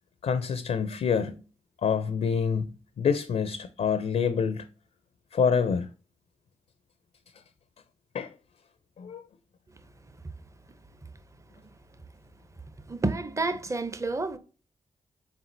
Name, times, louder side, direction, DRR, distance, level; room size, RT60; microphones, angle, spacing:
voice 1, 0.2-1.4 1.8-4.7 5.3-5.9 8.1-8.3 9.0-9.2, left 6 dB, 65° left, 0.4 m, -27 dB
voice 2, 12.9-14.4, right 3 dB, 25° right, 0.6 m, -29 dB
4.3 x 3.5 x 2.6 m
cardioid pair, 55°, 13 cm